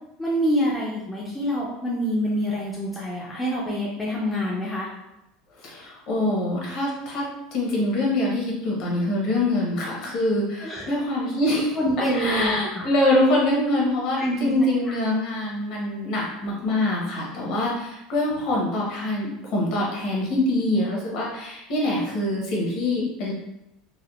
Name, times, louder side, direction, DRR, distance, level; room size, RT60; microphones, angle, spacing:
voice 1, 0.2-4.9 10.6-10.9 11.8-12.8 14.2-14.5 14.9-15.0, equal, 5° left, -5 dB, 0.4 m, -26 dB
voice 2, 5.6-7.2 7.5-11.7 12.1-23.3, left 1 dB, 50° left, -3 dB, 0.9 m, -24 dB
3.4 x 2.2 x 2.3 m, 0.88 s
supercardioid pair, 155°, 0 cm